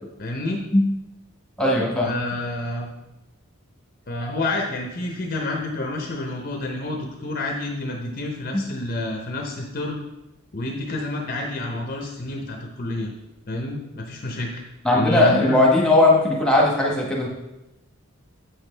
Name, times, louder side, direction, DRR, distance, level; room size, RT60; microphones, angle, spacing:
voice 1, 0.2-0.6 2.0-2.9 4.1-10.0 10.5-13.1 13.5-14.6 14.9-15.6, left 2 dB, 40° left, 1 dB, 0.7 m, -29 dB
voice 2, 1.6-2.1 14.8-17.3, left 2 dB, 5° left, -3 dB, 1.3 m, -18 dB
7.9 x 6.2 x 3.3 m, 0.96 s
head